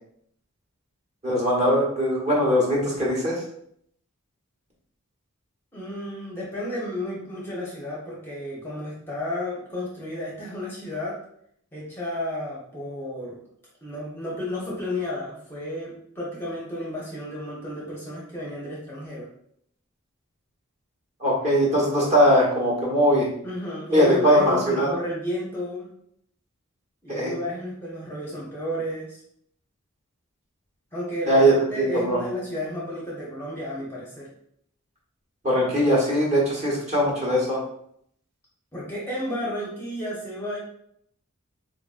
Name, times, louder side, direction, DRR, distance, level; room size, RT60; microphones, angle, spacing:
voice 1, 1.2-3.4 21.2-23.3 23.9-24.9 27.1-27.3 31.3-32.2 35.4-37.6, equal, 30° right, -4 dB, 1.0 m, -21 dB
voice 2, 5.7-11.2 11.7-13.4 13.8-19.3 23.4-25.9 27.0-29.2 30.9-34.3 38.7-40.6, left 1 dB, 10° left, -5 dB, 0.6 m, -32 dB
3.7 x 2.4 x 2.4 m, 0.68 s
head